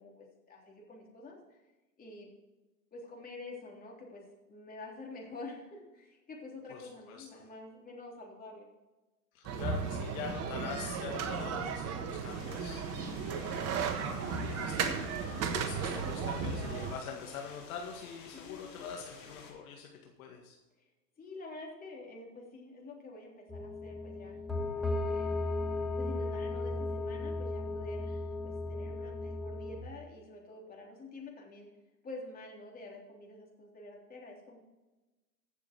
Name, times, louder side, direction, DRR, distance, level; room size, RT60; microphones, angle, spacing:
voice 1, 0.0-1.6 2.0-2.3 2.9-4.2 4.5-8.7 13.3-13.7 18.3-18.8 21.2-24.4 24.8-25.3 26.0-31.7 32.0-34.6, left 2 dB, 15° left, -1 dB, 3.4 m, -48 dB
voice 2, 6.7-7.5 9.3-20.6, left 6 dB, 55° left, 1 dB, 2.0 m, -44 dB
sound 1, 9.4-16.9, right 5 dB, 30° right, 1.5 m, -35 dB
sound 2, 12.3-19.5, left 5 dB, 80° left, 3.4 m, -52 dB
sound 3, 23.5-29.8, left 2 dB, ahead, 1.7 m, -35 dB
15.5 x 7.1 x 4.5 m, 1.1 s
hypercardioid pair, 115°, 49 cm